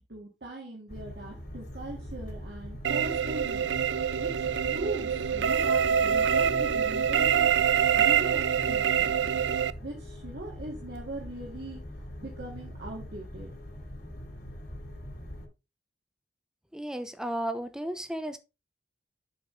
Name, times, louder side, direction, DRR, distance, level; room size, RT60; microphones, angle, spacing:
voice 1, 0.1-3.7 4.2-9.4 9.8-13.5, right 1 dB, 65° right, 2.0 m, -40 dB
sound 1, 0.9-15.5, left 1 dB, 60° left, 3.1 m, -42 dB
sound 2, 2.8-9.7, right 8 dB, 80° right, 0.4 m, -25 dB
voice 2, 16.7-18.4, right 1 dB, 5° right, 0.6 m, -34 dB
7.8 x 5.0 x 3.9 m
head